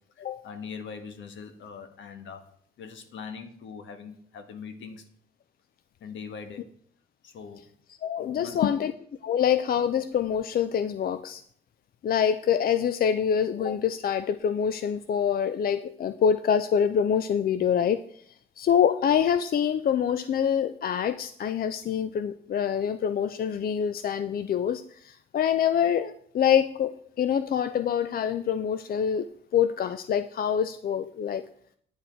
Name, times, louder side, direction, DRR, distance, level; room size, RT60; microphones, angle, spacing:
voice 1, 0.2-2.5 2.8-5.0 6.0-6.7 7.2-7.7 8.2-8.7, left 6 dB, 70° left, 7 dB, 1.4 m, -42 dB
voice 2, 7.9-8.9 9.2-11.4 12.0-31.5, left 8 dB, 50° left, 12 dB, 0.5 m, -26 dB
9.4 x 7.7 x 4.5 m, 0.62 s
cardioid pair, 90°, 20 cm